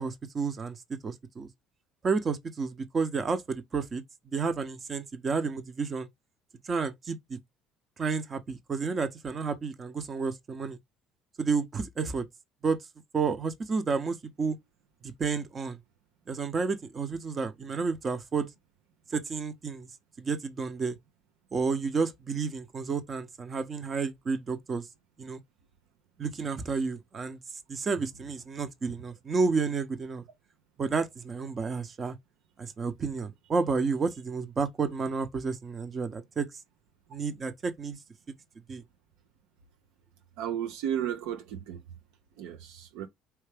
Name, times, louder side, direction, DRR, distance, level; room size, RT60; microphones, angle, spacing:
voice 1, 0.0-1.5 2.0-6.1 6.6-7.4 8.0-10.8 11.4-12.3 12.6-12.8 13.1-14.6 15.0-15.8 16.3-18.5 19.1-19.9 20.2-21.0 21.5-24.8 25.2-25.4 26.2-27.4 27.7-30.2 30.8-32.2 32.6-36.5 37.1-38.0 38.7-38.8, right 4 dB, 40° right, 0.9 m, -31 dB
voice 2, 40.4-41.8 42.4-43.1, right 10 dB, 75° right, 0.6 m, -33 dB
4.6 x 3.2 x 3.4 m
hypercardioid pair, 65°, 0 cm